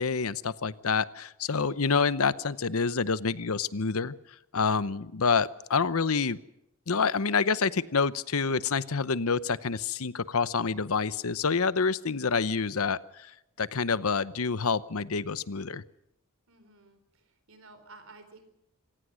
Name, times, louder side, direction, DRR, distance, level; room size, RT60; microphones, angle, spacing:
voice 1, 0.0-4.1 4.5-6.4 6.9-15.8, left 5 dB, 75° left, 16 dB, 0.8 m, -27 dB
voice 2, 16.5-18.4, right 3 dB, 65° right, 10 dB, 4.2 m, -53 dB
26.5 x 18.0 x 6.4 m, 0.83 s
head